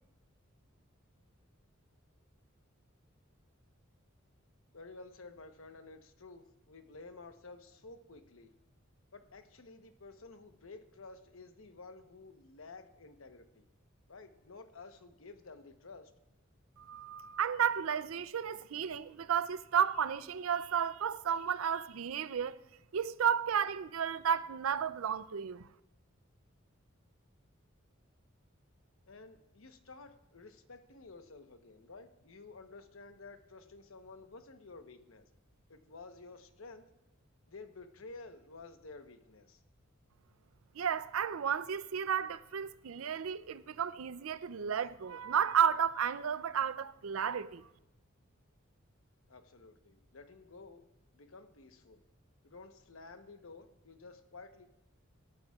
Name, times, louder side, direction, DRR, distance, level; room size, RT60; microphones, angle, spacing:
voice 1, 4.7-8.5 9.1-13.7 14.1-16.1 29.0-35.3 35.7-36.9 37.5-39.6 49.3-50.9 51.1-52.0 52.4-54.7, left 3 dB, 75° left, 1.0 m, -52 dB
voice 2, 16.8-22.6 22.9-25.7 40.8-47.7, right 8 dB, 80° right, 0.5 m, -33 dB
25.5 x 12.5 x 2.4 m
head